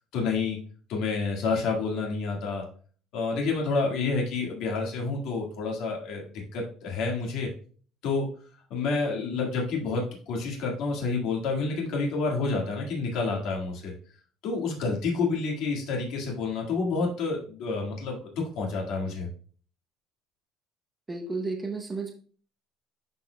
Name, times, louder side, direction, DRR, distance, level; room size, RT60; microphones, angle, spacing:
voice 1, 0.1-0.6 0.9-2.6 3.1-6.2 6.5-7.5 8.0-8.3 8.7-13.9 14.4-19.3, left 4 dB, 55° left, -1 dB, 1.8 m, -29 dB
voice 2, 21.1-22.1, right 3 dB, 10° right, 2 dB, 0.8 m, -32 dB
11.5 x 4.2 x 2.2 m, 0.43 s
cardioid pair, 170°, 0 cm